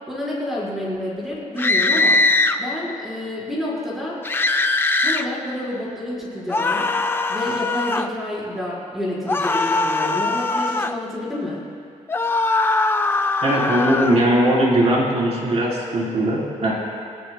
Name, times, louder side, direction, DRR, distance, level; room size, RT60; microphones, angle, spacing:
voice 1, 0.1-2.2 2.6-4.2 5.0-6.9 7.3-11.6, left 1 dB, ahead, -7 dB, 4.2 m, -29 dB
sound 1, 1.6-2.6 4.2-5.2 6.5-8.1 9.3-11.0 12.1-14.2, left 2 dB, 15° left, 0.4 m, -21 dB
voice 2, 13.4-16.7, right 1 dB, 55° right, -4 dB, 3.6 m, -19 dB
29.0 x 17.5 x 2.2 m, 2.3 s
wide cardioid pair, 155°, 13 cm